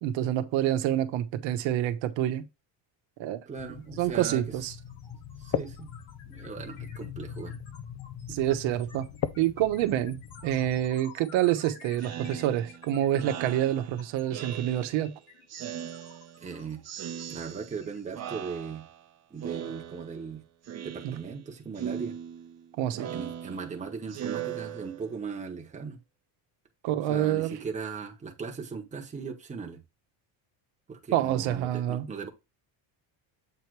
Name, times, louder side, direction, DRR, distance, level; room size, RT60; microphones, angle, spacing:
voice 1, 0.0-2.4 3.2-3.4 4.0-4.7 8.3-9.1 9.4-15.1 21.0-21.2 22.8-23.1 26.8-27.6 31.1-32.1, right 12 dB, 85° right, 1.0 m, -27 dB
voice 2, 3.5-4.4 5.4-5.9 6.3-7.6 8.3-8.4 16.4-16.9 17.3-18.8 19.3-20.4 20.8-22.1 23.1-26.0 27.1-29.8 30.9-32.3, right 5 dB, 15° right, 1.1 m, -38 dB
sound 1, 3.6-10.9, left 9 dB, 40° left, 0.4 m, -39 dB
sound 2, 3.8-4.0 4.3-18.6, left 5 dB, 90° left, 3.4 m, -53 dB
Speech synthesizer, 12.0-15.1 15.5-16.5 16.8-17.9 18.1-19.1 19.4-20.3 20.6-21.4 21.7-25.3, right 9 dB, 35° right, 0.8 m, -39 dB
7.8 x 3.1 x 4.6 m
cardioid pair, 175°, 45 cm